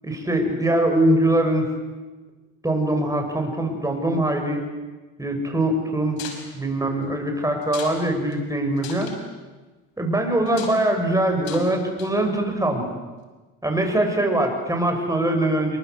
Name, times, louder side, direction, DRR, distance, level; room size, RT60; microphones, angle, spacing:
voice 1, 0.0-1.7 2.6-4.6 5.2-6.2 6.5-9.1 10.0-13.0 13.6-15.8, right 1 dB, 10° right, 3 dB, 6.8 m, -22 dB
sound 1, 6.2-6.4 7.6-8.0 8.3-8.4 8.8-9.2 10.5-10.8 11.4-11.7 12.0-12.3, left 7 dB, 70° left, 5.7 m, -37 dB
27.0 x 24.0 x 8.2 m, 1.2 s
supercardioid pair, 95°, 37 cm